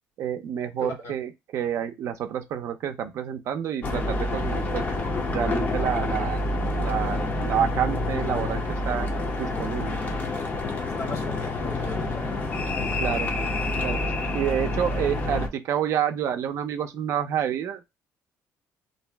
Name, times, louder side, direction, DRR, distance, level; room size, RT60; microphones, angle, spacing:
voice 1, 0.2-4.9 5.3-6.4 6.8-9.1 9.4-10.0 13.0-13.3 13.8-14.0 14.3-18.0, right 9 dB, 60° right, 0.4 m, -28 dB
voice 2, 0.8-1.2 11.0-12.4, left 2 dB, 55° left, 1.2 m, -37 dB
sound 1, 3.8-15.5, left 2 dB, 30° left, 0.6 m, -28 dB
2.6 x 2.0 x 3.2 m
cardioid pair, 135°, 6 cm